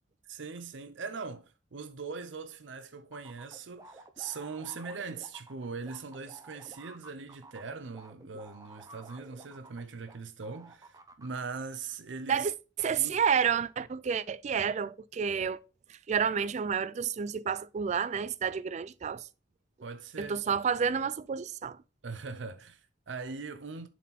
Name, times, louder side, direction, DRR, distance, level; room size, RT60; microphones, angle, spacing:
voice 1, 0.3-12.5 13.0-13.1 19.8-20.4 22.0-23.9, right 4 dB, 80° right, 0.6 m, -41 dB
sound 1, 3.1-10.2 10.4-11.4, right 2 dB, 20° right, 0.8 m, -51 dB
voice 2, 12.8-15.6 16.1-19.2 20.2-21.8, right 7 dB, 40° right, 0.3 m, -30 dB
7.2 x 4.3 x 4.1 m
head